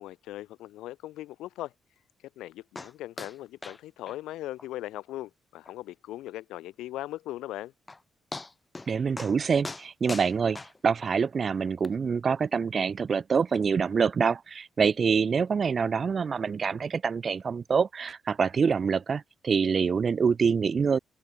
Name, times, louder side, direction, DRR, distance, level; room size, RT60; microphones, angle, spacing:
voice 1, 0.0-1.7 2.4-7.7, left 15 dB, 90° left, 0.5 m, -39 dB
sound 1, 2.8-2.9 3.2-3.4 3.6-3.8 4.1-4.2 4.6-4.7 5.1-5.2 5.7-5.8 7.4-7.5 7.9-8.0 8.3-8.9 9.2-9.4 9.6-11.1 11.8-11.9, left 3 dB, 20° left, 1.2 m, -40 dB
voice 2, 8.9-10.6 10.8-21.0, right 6 dB, 40° right, 0.6 m, -26 dB
cardioid pair, 90°, 0 cm